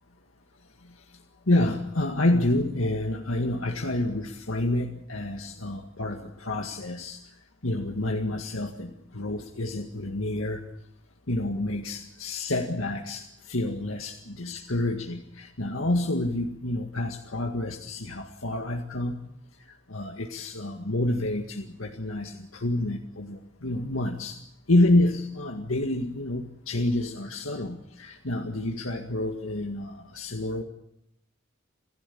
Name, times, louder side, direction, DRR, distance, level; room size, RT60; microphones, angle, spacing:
voice 1, 1.5-7.2 7.6-10.6 11.3-19.2 19.9-24.4 24.7-30.6, left 1 dB, 90° left, 3 dB, 2.0 m, -28 dB
27.5 x 16.0 x 8.6 m, 0.78 s
head